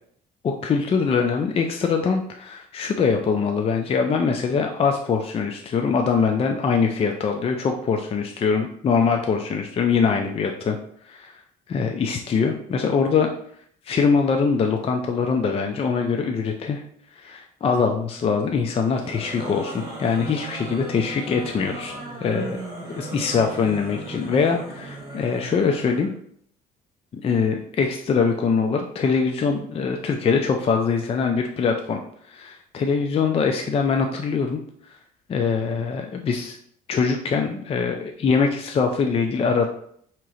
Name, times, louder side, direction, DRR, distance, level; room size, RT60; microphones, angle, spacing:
voice 1, 0.4-10.8 11.0-11.4 11.7-13.3 13.9-16.8 17.2-21.9 22.2-22.6 22.9-26.1 27.1-32.0 32.3-34.6 35.3-36.6 36.9-39.7, left 5 dB, 35° left, 4 dB, 0.5 m, -23 dB
sound 1, 18.8-26.1, right 2 dB, 20° right, 1.8 m, -36 dB
3.7 x 3.0 x 4.8 m, 0.64 s
cardioid pair, 110°, 17 cm